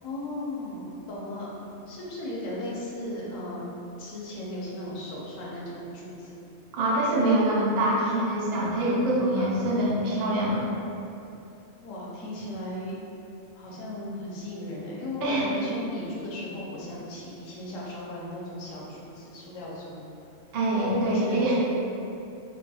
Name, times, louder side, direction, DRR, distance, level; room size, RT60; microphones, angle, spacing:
voice 1, 0.0-1.5 1.9-3.6 4.0-6.4 9.3-9.6 11.8-13.0 13.6-20.0 20.7-21.6, left 1 dB, 75° left, -5 dB, 1.0 m, -36 dB
voice 2, 6.7-10.8 15.2-15.6 20.5-21.6, right 1 dB, 75° right, -5 dB, 0.3 m, -25 dB
2.8 x 2.2 x 2.7 m, 2.8 s
omnidirectional pair, 1.4 m